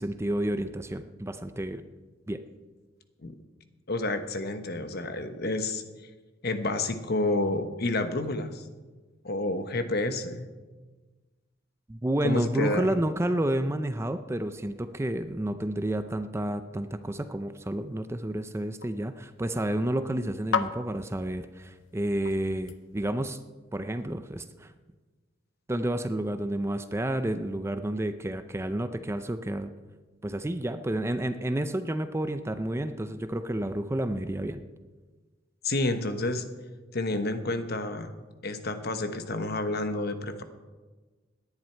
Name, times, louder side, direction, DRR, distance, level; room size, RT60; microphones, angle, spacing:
voice 1, 0.0-1.8 2.3-2.4 11.9-23.4 23.7-24.7 25.7-29.7 30.2-34.6, right 1 dB, 15° right, 10 dB, 0.5 m, -30 dB
voice 2, 3.9-5.8 6.4-8.6 9.2-10.5 12.2-12.9 35.6-36.4 36.9-38.1 38.4-40.4, left 2 dB, 55° left, 9 dB, 1.1 m, -29 dB
sound 1, 17.5-23.3, left 6 dB, 70° left, 0.7 m, -38 dB
17.5 x 10.5 x 4.5 m, 1.3 s
head